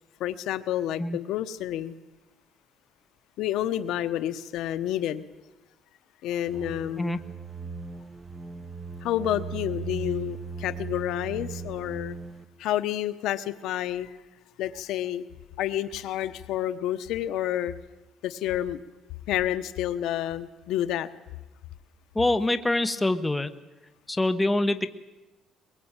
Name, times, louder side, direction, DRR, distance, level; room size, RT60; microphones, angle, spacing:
voice 1, 0.2-1.9 3.4-5.2 6.2-7.2 9.0-12.2 12.6-14.1 14.6-15.2 15.6-17.7 18.2-18.8 19.3-21.1, left 12 dB, 75° left, 13 dB, 1.0 m, -29 dB
sound 1, 6.5-12.4, right 5 dB, 15° right, 1.5 m, -38 dB
voice 2, 22.1-23.5 24.1-24.9, left 2 dB, 10° left, 10 dB, 1.1 m, -25 dB
22.5 x 22.0 x 8.9 m, 1.0 s
cardioid pair, 135°, 0 cm